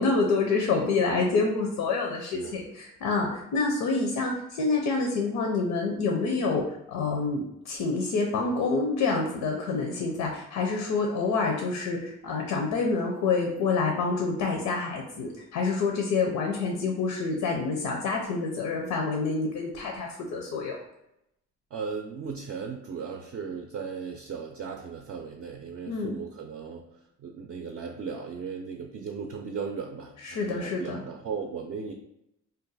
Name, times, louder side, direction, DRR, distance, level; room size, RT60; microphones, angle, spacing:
voice 1, 0.0-6.6 6.9-20.8 25.9-26.2 30.2-31.0, left 4 dB, 85° left, 1 dB, 0.6 m, -27 dB
voice 2, 2.2-2.5 21.7-26.8 27.2-30.1 30.4-31.9, right 5 dB, 50° right, 2 dB, 0.5 m, -36 dB
2.6 x 2.2 x 4.0 m, 0.81 s
cardioid pair, 90°, 30 cm